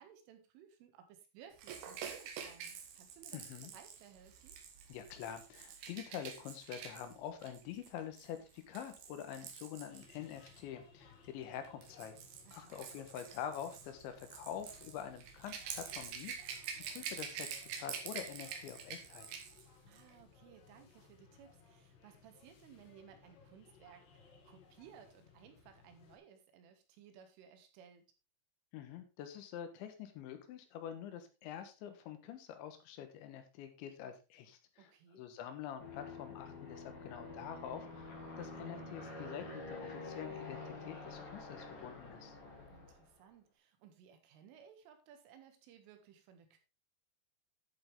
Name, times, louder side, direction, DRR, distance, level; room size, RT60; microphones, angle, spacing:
voice 1, 0.0-3.4 3.7-4.6 12.5-12.8 19.9-28.0 34.8-35.3 42.7-46.6, right 8 dB, 80° right, 6 dB, 4.1 m, -59 dB
Rattle / Rattle (instrument), 1.6-10.6 11.5-19.6 19.9-20.1, right 7 dB, 65° right, 3.1 m, -47 dB
voice 2, 3.3-3.7 4.9-12.2 12.5-16.6 16.9-19.3 28.7-38.1 38.4-42.4, left 9 dB, 75° left, 8 dB, 3.3 m, -46 dB
sound 1, 9.9-26.2, left 5 dB, 60° left, 3.9 m, -63 dB
Aircraft, 35.8-43.1, left 3 dB, 40° left, 2.6 m, -48 dB
10.5 x 7.6 x 3.5 m, 0.29 s
omnidirectional pair, 5.7 m